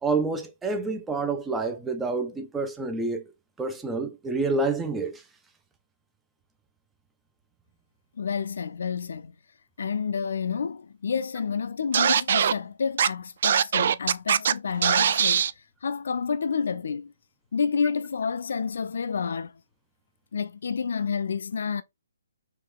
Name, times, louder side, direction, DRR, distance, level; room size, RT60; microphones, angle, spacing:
voice 1, 0.0-3.2 3.6-5.2, right 3 dB, 10° right, 0.7 m, -28 dB
voice 2, 8.2-9.3 9.8-17.1 17.5-19.6 20.3-21.8, left 6 dB, 60° left, 0.4 m, -29 dB
Scratching (performance technique), 11.9-12.5 13.0-13.1 13.4-14.5 14.8-15.5, right 8 dB, 50° right, 0.3 m, -21 dB
4.5 x 3.1 x 3.6 m
figure-of-eight pair, 135°, 0 cm